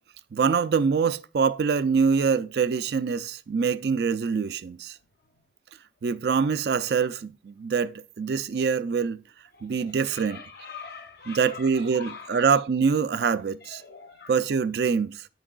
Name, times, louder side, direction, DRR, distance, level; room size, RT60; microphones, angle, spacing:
voice 1, 0.3-5.0 6.0-9.2 9.6-10.4 11.3-13.8 14.3-15.3, right 5 dB, 60° right, 0.4 m, -24 dB
voice 2, 9.5-12.5 13.1-13.3 13.6-14.4, left 5 dB, 55° left, 0.6 m, -44 dB
9.5 x 6.2 x 2.3 m
head